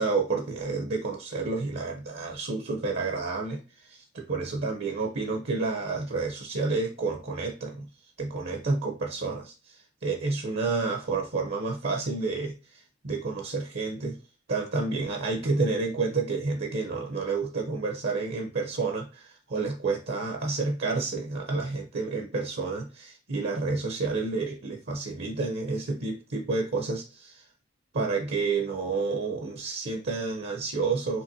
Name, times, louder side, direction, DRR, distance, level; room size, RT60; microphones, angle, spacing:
voice 1, 0.0-7.8 8.2-14.2 14.5-27.4 27.9-31.2, right 3 dB, 65° right, 2 dB, 0.8 m, -30 dB
5.6 x 3.0 x 2.8 m, 0.31 s
head